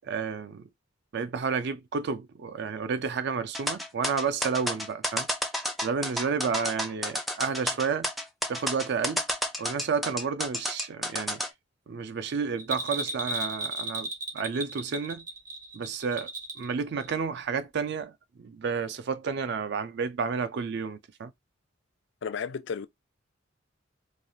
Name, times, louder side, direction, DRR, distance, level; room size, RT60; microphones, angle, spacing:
voice 1, 0.0-0.7 1.1-5.3 5.8-8.1 8.5-9.3 9.6-11.4 11.9-15.2 15.7-16.3 16.6-18.1 18.4-21.3, right 5 dB, 60° right, 0.4 m, -31 dB
sound 1, 3.5-11.5, left 1 dB, ahead, 0.5 m, -30 dB
Bell, 12.6-16.7 17.0-17.1, right 2 dB, 45° right, 1.1 m, -34 dB
voice 2, 22.2-22.9, left 6 dB, 65° left, 0.4 m, -33 dB
3.2 x 2.3 x 2.6 m
head